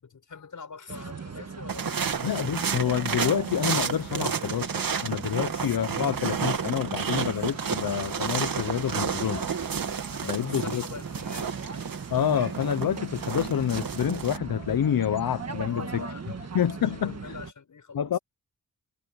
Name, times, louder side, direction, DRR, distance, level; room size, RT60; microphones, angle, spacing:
voice 1, 0.0-2.2 5.3-5.6 10.2-11.6 15.7-18.2, left 5 dB, 60° left, 6.6 m, -44 dB
sound 1, 0.9-17.5, right 5 dB, 50° right, 1.8 m, -39 dB
sound 2, 1.7-14.4, right 6 dB, 75° right, 2.5 m, -31 dB
voice 2, 2.2-4.7 5.0-9.5 10.2-10.8 12.1-16.0 16.5-17.3 17.9-18.2, left 9 dB, 80° left, 0.9 m, -28 dB
wide cardioid pair, 165°, 34 cm